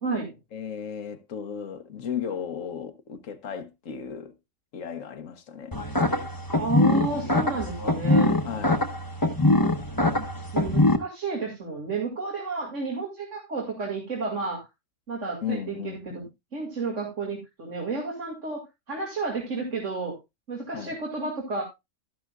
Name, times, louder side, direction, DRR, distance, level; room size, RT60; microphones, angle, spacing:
voice 1, 0.0-0.3 6.6-8.3 10.5-14.7 15.1-16.2 16.5-20.2 20.5-21.6, right 3 dB, 70° right, 2.6 m, -31 dB
voice 2, 0.5-4.3 4.7-6.1 8.4-8.9 15.4-16.3 20.7-21.0, left 7 dB, 80° left, 1.5 m, -35 dB
sound 1, 5.7-11.0, left 2 dB, 20° left, 1.0 m, -23 dB
12.5 x 11.0 x 2.3 m
omnidirectional pair, 1.3 m